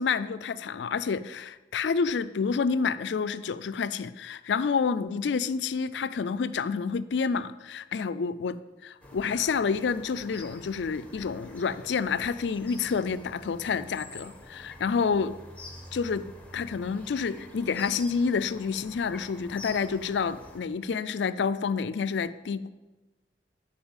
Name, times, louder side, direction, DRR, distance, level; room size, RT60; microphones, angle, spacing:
voice 1, 0.0-8.6 8.8-15.3 15.9-16.3 16.5-22.7, left 5 dB, 75° left, 14 dB, 0.4 m, -29 dB
sound 1, 9.0-20.6, left 1 dB, 10° left, 1.1 m, -47 dB
8.6 x 5.5 x 7.2 m, 1.1 s
head